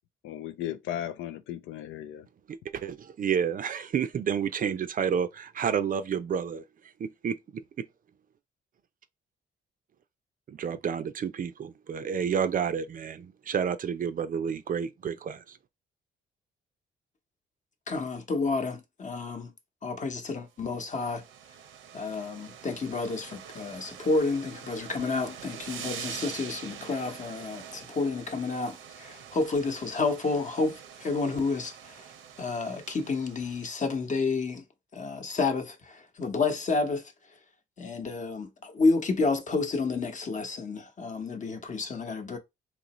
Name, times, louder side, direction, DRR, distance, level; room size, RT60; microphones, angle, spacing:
voice 1, 0.2-2.3, left 11 dB, 80° left, 0.4 m, -36 dB
voice 2, 2.5-6.6 7.0-7.9 10.5-15.6, right 7 dB, 45° right, 0.5 m, -30 dB
voice 3, 17.9-19.5 19.8-21.2 21.9-32.0 32.4-34.6 34.9-37.0 37.8-42.4, left 3 dB, 40° left, 0.9 m, -30 dB
sound 1, 20.7-33.9, right 8 dB, 85° right, 0.7 m, -45 dB
4.0 x 2.9 x 2.9 m
cardioid pair, 90°, 20 cm